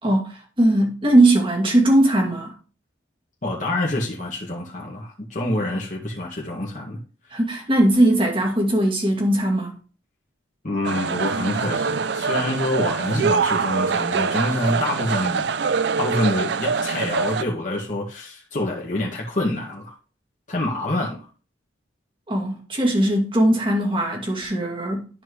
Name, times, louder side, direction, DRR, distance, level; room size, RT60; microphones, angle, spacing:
voice 1, 0.0-2.5 7.3-9.8 22.3-25.1, right 1 dB, 25° right, 2.3 m, -19 dB
voice 2, 3.4-7.0 10.6-15.5 16.0-19.9 20.5-21.2, left 1 dB, 40° left, 2.0 m, -26 dB
sound 1, 10.8-17.4, right 5 dB, 60° right, 0.4 m, -24 dB
12.0 x 4.6 x 3.1 m
head